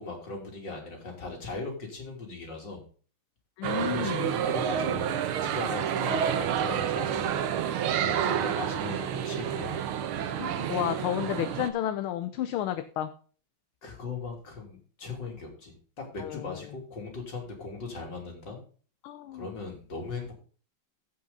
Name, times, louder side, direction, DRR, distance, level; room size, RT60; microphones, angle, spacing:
voice 1, 0.0-2.8 3.9-7.4 8.0-9.9 13.8-18.6 19.3-20.3, left 3 dB, 55° left, 1 dB, 3.6 m, -39 dB
voice 2, 3.6-4.4 10.3-13.1 16.2-16.5 19.0-19.5, left 11 dB, 80° left, 10 dB, 1.6 m, -31 dB
sound 1, 3.6-11.7, right 9 dB, 85° right, 1.8 m, -29 dB
15.5 x 5.7 x 3.9 m, 0.40 s
omnidirectional pair, 2.3 m